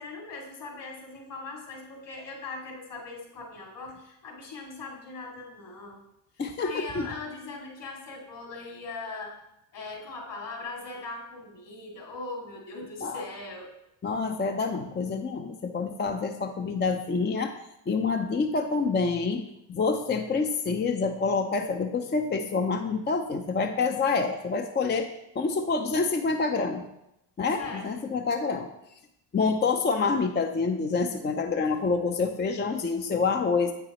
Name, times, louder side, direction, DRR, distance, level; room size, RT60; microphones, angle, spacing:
voice 1, 0.0-6.0 6.3-9.4 9.7-13.7 27.6-27.9, left 3 dB, 60° left, -1 dB, 2.6 m, -40 dB
voice 2, 6.4-7.1 13.0-13.2 14.0-17.5 17.9-25.1 25.4-26.8 27.4-28.7 29.3-33.7, left 4 dB, 20° left, 5 dB, 0.5 m, -27 dB
7.9 x 6.9 x 3.1 m, 0.84 s
supercardioid pair, 65°, 49 cm